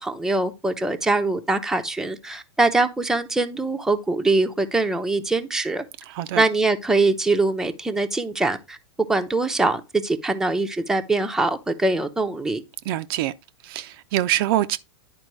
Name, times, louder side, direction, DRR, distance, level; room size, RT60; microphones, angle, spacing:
voice 1, 0.0-5.8 6.4-8.8 9.1-12.6, right 3 dB, 5° right, 0.7 m, -23 dB
voice 2, 6.1-6.4 12.9-13.3 13.6-14.8, right 14 dB, 50° right, 0.5 m, -24 dB
10.5 x 4.5 x 3.1 m
hypercardioid pair, 110°, 16 cm